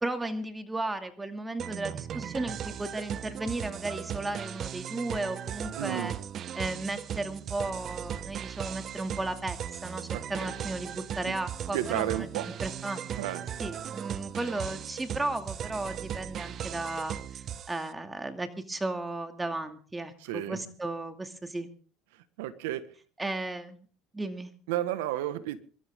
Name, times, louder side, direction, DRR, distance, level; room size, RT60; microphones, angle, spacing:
voice 1, 0.0-6.1 6.5-12.3 12.6-21.7 23.2-23.9 24.1-24.5, right 2 dB, 10° right, 7 dB, 2.4 m, -35 dB
sound 1, 1.6-17.9, right 9 dB, 45° right, 1.0 m, -37 dB
voice 2, 5.7-6.1 10.1-10.5 11.2-11.3 11.7-12.5 13.2-13.4 20.2-20.6 22.4-22.8 24.7-25.6, right 13 dB, 90° right, 13 dB, 1.6 m, -32 dB
24.5 x 13.0 x 3.7 m, 0.41 s
supercardioid pair, 110°, 0 cm